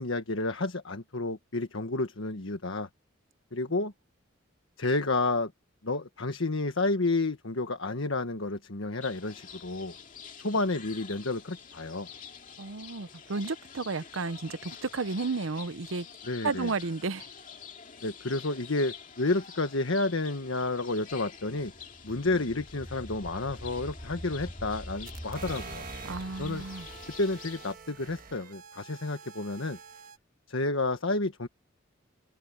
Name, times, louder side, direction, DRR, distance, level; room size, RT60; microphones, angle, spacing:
voice 1, 0.0-2.9 3.5-3.9 4.8-5.5 5.8-9.9 10.4-12.1 16.2-16.7 18.0-21.7 22.0-25.8 26.4-26.6 27.2-29.8 30.5-31.5, left 2 dB, 85° left, 1.5 m, -30 dB
sound 1, 9.0-27.8, left 7 dB, 40° left, 2.2 m, -48 dB
voice 2, 12.6-16.1 16.4-17.3 26.0-26.9, right 4 dB, 85° right, 0.8 m, -32 dB
sound 2, 21.3-28.2, equal, 20° right, 4.4 m, -45 dB
sound 3, 25.1-30.2, right 5 dB, 45° right, 1.4 m, -46 dB
head